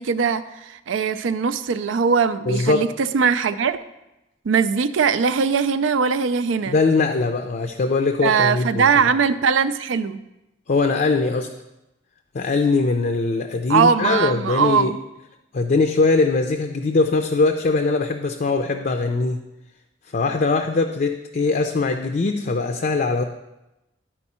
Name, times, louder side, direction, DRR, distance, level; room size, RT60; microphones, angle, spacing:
voice 1, 0.0-3.8 4.4-6.8 8.2-10.2 13.7-15.0, right 6 dB, 90° right, 13 dB, 0.4 m, -20 dB
voice 2, 2.5-2.9 6.7-9.0 10.7-11.5 12.3-14.9 15.5-19.4 20.1-23.2, left 3 dB, 45° left, 5 dB, 0.5 m, -21 dB
11.5 x 4.5 x 4.3 m, 0.95 s
head